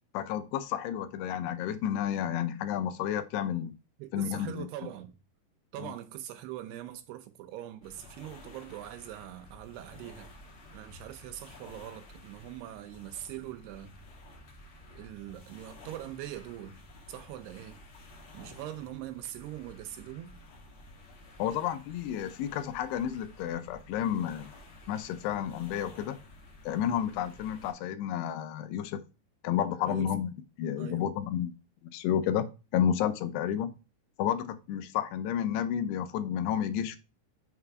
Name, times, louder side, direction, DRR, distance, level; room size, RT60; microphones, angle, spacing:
voice 1, 0.1-3.7 4.1-4.7 5.8-5.9 21.4-24.5 24.9-26.2 26.7-29.0 29.4-31.5 31.8-32.5 32.7-33.7 34.2-37.0, left 10 dB, 80° left, 2.7 m, -31 dB
voice 2, 4.0-5.2 5.7-10.3 10.7-14.0 14.9-16.8 17.1-17.8 18.3-20.3 29.9-30.1 30.8-31.1, right 13 dB, 80° right, 2.7 m, -42 dB
sound 1, 7.8-27.7, left 2 dB, 55° left, 1.5 m, -52 dB
6.5 x 3.9 x 4.7 m
omnidirectional pair, 4.9 m